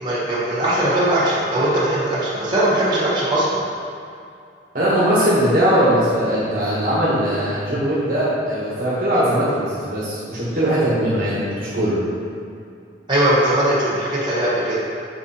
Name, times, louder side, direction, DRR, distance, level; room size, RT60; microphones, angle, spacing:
voice 1, 0.0-3.7 13.1-14.8, right 1 dB, 25° right, -8 dB, 1.4 m, -20 dB
voice 2, 4.7-12.0, equal, 45° right, -8 dB, 1.1 m, -20 dB
6.2 x 3.6 x 4.2 m, 2.4 s
head